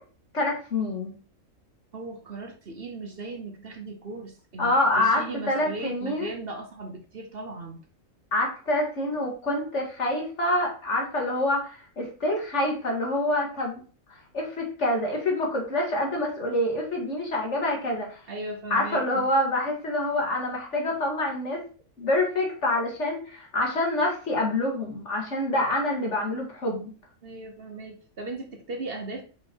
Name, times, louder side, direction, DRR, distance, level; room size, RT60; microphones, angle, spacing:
voice 1, 0.3-1.1 4.6-6.4 8.3-13.7 14.1-18.2 18.7-21.6 22.0-26.9, left 1 dB, 60° left, 2.4 m, -26 dB
voice 2, 1.9-7.8 18.3-19.3 27.2-29.2, right 3 dB, 50° right, 1.1 m, -37 dB
5.6 x 5.4 x 4.5 m
omnidirectional pair, 1.4 m